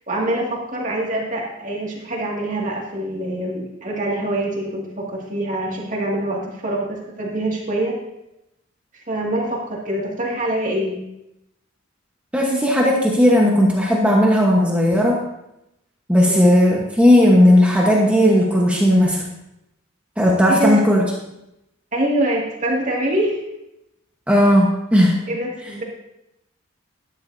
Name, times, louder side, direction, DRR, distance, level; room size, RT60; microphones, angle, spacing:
voice 1, 0.1-8.0 8.9-11.0 16.3-16.5 20.5-20.8 21.9-23.4 25.3-25.8, right 1 dB, 35° right, -3 dB, 2.2 m, -24 dB
voice 2, 12.3-15.2 16.1-19.2 20.2-21.0 24.3-25.1, equal, 5° right, -2 dB, 1.2 m, -15 dB
13.0 x 10.5 x 2.7 m, 0.87 s
head